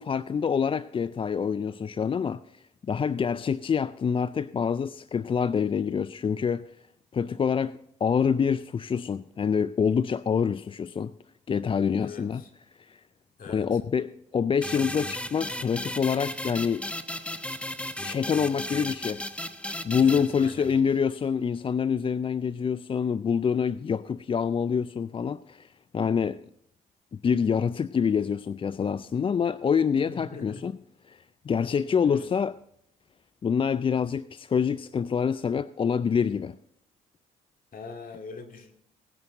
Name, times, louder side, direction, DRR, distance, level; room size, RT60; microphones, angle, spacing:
voice 1, 0.0-6.7 7.1-11.1 11.5-12.4 12.8-13.0 13.5-16.8 18.0-19.2 19.8-26.4 27.1-30.7 31.1-32.6 33.4-36.5, left 6 dB, 30° left, 0.4 m, -26 dB
voice 2, 12.0-12.5 13.4-13.8 20.0-20.7 30.0-30.6 32.0-32.3 37.7-38.7, left 4 dB, 50° left, 2.3 m, -42 dB
sound 1, 14.6-21.0, left 1 dB, 5° left, 1.0 m, -35 dB
18.0 x 9.8 x 3.9 m
hypercardioid pair, 50°, 19 cm